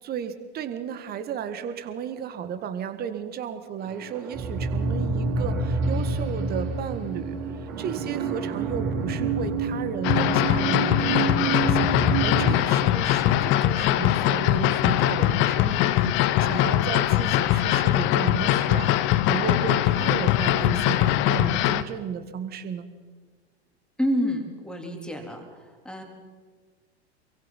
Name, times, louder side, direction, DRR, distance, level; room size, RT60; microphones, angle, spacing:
voice 1, 0.0-22.9, right 8 dB, 30° right, 10 dB, 1.8 m, -34 dB
sound 1, 3.8-12.5, right 4 dB, 55° right, 6.5 m, -28 dB
sound 2, 10.0-21.8, left 14 dB, 35° left, 0.9 m, -22 dB
voice 2, 24.0-25.4 25.8-26.0, equal, 5° left, 2 dB, 3.4 m, -28 dB
28.0 x 23.0 x 4.2 m, 1.5 s
figure-of-eight pair, 90°, 33 cm